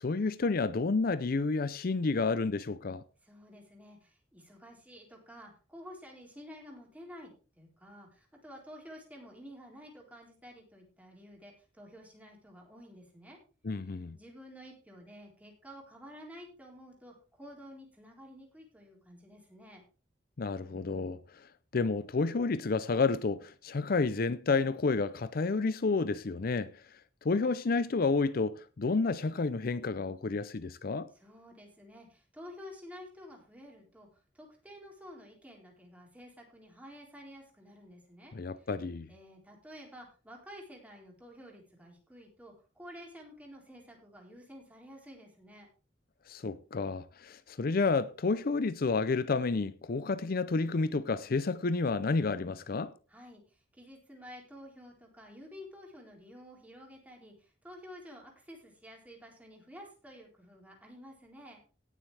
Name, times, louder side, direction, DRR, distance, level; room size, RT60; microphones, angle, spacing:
voice 1, 0.0-3.0 13.6-14.2 20.4-26.8 27.2-31.1 38.3-39.1 46.3-52.9, left 4 dB, 55° left, 0.5 m, -30 dB
voice 2, 3.2-7.3 7.6-13.4 14.1-19.8 31.1-34.1 34.3-38.7 39.1-45.7 53.1-61.6, equal, 10° right, 4.1 m, -51 dB
18.0 x 7.4 x 3.4 m
head